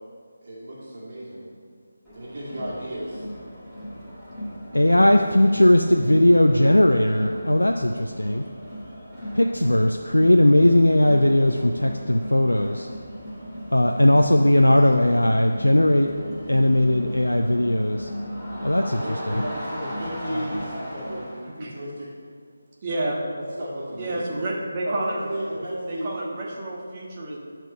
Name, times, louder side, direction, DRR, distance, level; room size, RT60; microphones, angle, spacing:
voice 1, 0.4-1.5 2.1-3.3 18.9-21.3 21.5-22.1 23.4-24.3 24.8-26.1, right 1 dB, 45° right, -7 dB, 2.2 m, -33 dB
Crowd, 2.0-21.5, equal, ahead, 2.1 m, -36 dB
voice 2, 4.7-8.4 9.3-12.9 13.7-16.1 16.5-18.1 18.6-19.0 19.3-19.4, left 1 dB, 85° left, 4 dB, 0.4 m, -18 dB
voice 3, 22.8-23.2 24.0-25.2 25.9-27.4, right 2 dB, 25° right, -4 dB, 1.3 m, -30 dB
10.0 x 4.5 x 5.5 m, 2.1 s
figure-of-eight pair, 155°, 0 cm